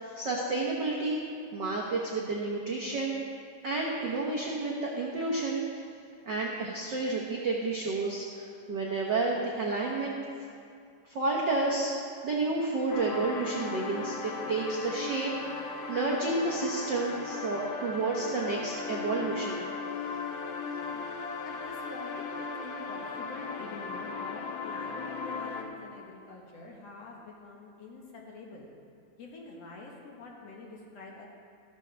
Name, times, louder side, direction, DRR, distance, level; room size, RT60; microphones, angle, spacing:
voice 1, 0.1-1.2 1.5-3.2 3.6-5.8 6.2-10.1 11.0-11.9 12.2-15.3 15.9-19.6, right 3 dB, 85° right, -3 dB, 0.9 m, -30 dB
sound 1, 12.9-25.6, left 4 dB, 85° left, 1.0 m, -37 dB
voice 2, 20.2-21.0 21.4-28.7 29.2-31.3, left 3 dB, 60° left, -2 dB, 2.3 m, -46 dB
14.5 x 13.0 x 3.4 m, 2.4 s
omnidirectional pair, 3.7 m